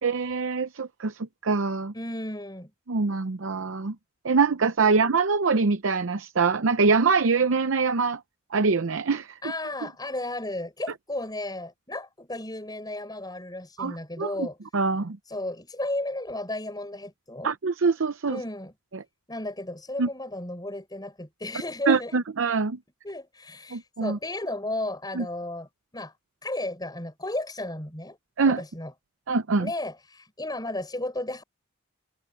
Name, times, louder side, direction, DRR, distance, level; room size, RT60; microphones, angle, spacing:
voice 1, 0.0-1.9 2.9-4.0 4.2-8.2 8.5-9.4 13.8-14.5 14.7-15.2 17.4-18.4 18.9-19.0 20.0-20.1 21.9-22.8 23.7-24.2 25.1-25.2 28.4-28.6 29.3-29.7, right 4 dB, 65° right, 0.6 m, -24 dB
voice 2, 1.9-2.7 4.8-5.0 9.4-14.6 15.3-17.5 18.3-18.7 19.3-22.1 23.0-25.7 25.9-26.1 26.4-28.2 28.5-28.9 29.6-31.4, left 1 dB, 20° left, 6.4 m, -34 dB
head